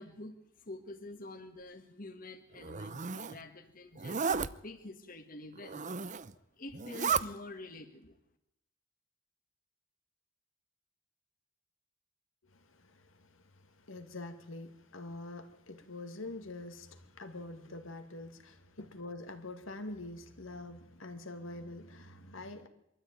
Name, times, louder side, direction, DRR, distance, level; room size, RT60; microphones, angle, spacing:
voice 1, 0.0-5.8 6.3-8.2, left 2 dB, 45° left, 1.6 m, -47 dB
Zipper (clothing), 2.6-3.4 4.0-4.5 5.6-6.3 6.7-7.2, right 6 dB, 40° right, 0.7 m, -33 dB
voice 2, 12.4-22.7, left 2 dB, 90° left, 2.4 m, -45 dB
23.5 x 13.5 x 9.3 m
head